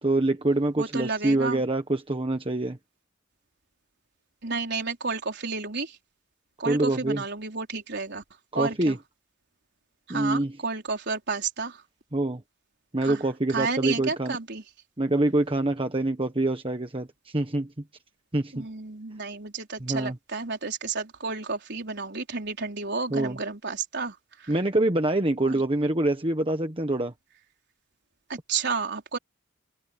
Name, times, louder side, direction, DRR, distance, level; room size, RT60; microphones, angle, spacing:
voice 1, 0.0-2.8 6.6-7.2 8.5-9.0 10.1-10.6 12.1-12.4 12.9-14.4 15.0-17.7 18.3-18.6 19.8-20.2 23.1-23.4 24.5-27.1, right 2 dB, 25° right, 1.4 m, -25 dB
voice 2, 0.8-1.6 4.4-5.9 6.6-8.2 8.5-9.0 10.1-11.8 13.0-13.2 13.5-14.6 18.5-24.1 24.4-24.5 25.4-25.6 28.3-29.2, right 4 dB, 55° right, 4.5 m, -31 dB
open air
head